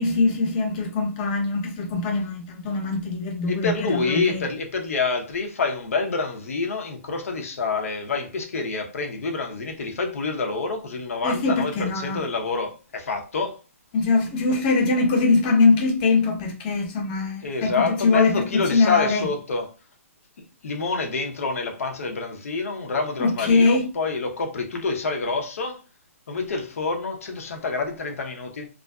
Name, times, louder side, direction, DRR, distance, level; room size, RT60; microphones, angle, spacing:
voice 1, 0.0-4.4 11.2-12.2 13.9-19.2 23.2-23.8, left 3 dB, 35° left, 0.8 m, -22 dB
voice 2, 3.5-13.6 14.5-14.6 17.4-19.7 20.6-25.8 26.3-28.7, left 4 dB, 70° left, 0.7 m, -27 dB
2.5 x 2.5 x 2.3 m
hypercardioid pair, 145°, 8 cm